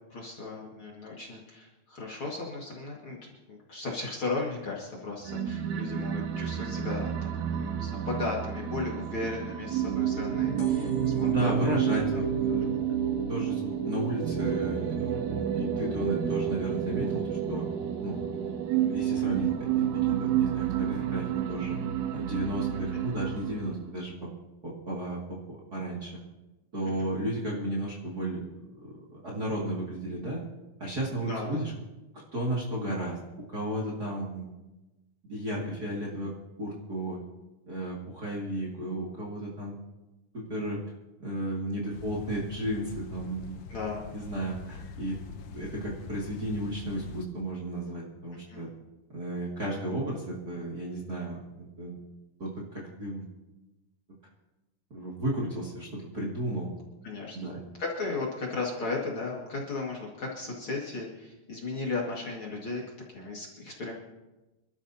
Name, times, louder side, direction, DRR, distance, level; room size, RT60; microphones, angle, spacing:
voice 1, 0.1-3.2 3.5-11.8 12.7-12.9 22.9-23.0 27.0-27.1 31.2-31.6 43.7-44.1 48.5-48.7 57.0-57.4 57.8-62.8 63.1-63.9, left 3 dB, 40° left, -3 dB, 2.4 m, -36 dB
sound 1, 5.2-23.8, right 9 dB, 70° right, 2.0 m, -30 dB
sound 2, 10.6-17.8 18.3-18.8 19.6-19.7 19.9-20.0 20.2-20.3, left 7 dB, 65° left, 4.1 m, -48 dB
voice 2, 11.2-12.7 13.3-17.7 18.0-18.6 18.8-21.8 22.1-24.3 24.6-26.1 26.7-28.4 28.8-30.4 30.8-31.7 32.3-33.2 33.5-34.5 35.3-36.3 36.6-37.2 37.7-39.7 40.3-40.8 41.2-43.6 44.1-45.2 45.5-48.7 49.1-52.0 52.4-53.3 54.9-56.7 57.3-57.6, right 1 dB, 30° right, -4 dB, 2.4 m, -34 dB
sound 3, 41.9-47.3, left 5 dB, 85° left, 1.3 m, -43 dB
27.5 x 12.5 x 2.8 m, 1.1 s
omnidirectional pair, 4.0 m